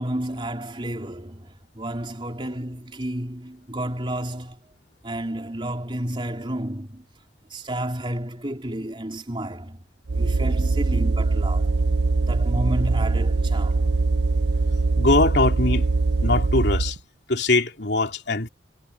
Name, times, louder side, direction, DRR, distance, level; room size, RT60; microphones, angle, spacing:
voice 1, 0.0-4.6 5.0-7.1 7.5-9.8 10.1-11.8 12.2-14.0, right 1 dB, 30° right, 3.6 m, -31 dB
sound 1, 10.1-17.0, right 3 dB, 60° right, 0.6 m, -22 dB
voice 2, 15.0-15.8 16.2-17.0 17.3-18.5, left 2 dB, 65° left, 3.3 m, -21 dB
head